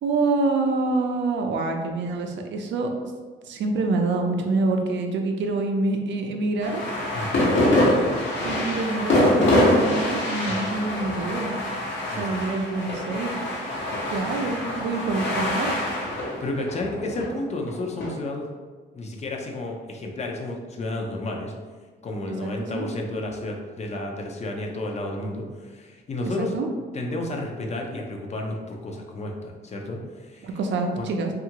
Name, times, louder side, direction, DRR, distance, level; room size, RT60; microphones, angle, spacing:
voice 1, 0.0-2.9 3.5-6.8 8.4-11.6 12.2-13.3 14.1-15.7 22.4-22.9 26.4-26.7 30.4-31.3, right 3 dB, 65° right, 3 dB, 0.5 m, -26 dB
sound 1, 6.6-18.1, left 1 dB, 65° left, 0.9 m, -24 dB
voice 2, 7.1-7.5 12.1-12.5 14.9-15.0 16.4-18.5 18.9-21.5 22.0-26.6 26.9-30.5 31.0-31.1, left 2 dB, 35° left, 1 dB, 0.5 m, -31 dB
2.7 x 2.4 x 2.9 m, 1.4 s
cardioid pair, 90°, 20 cm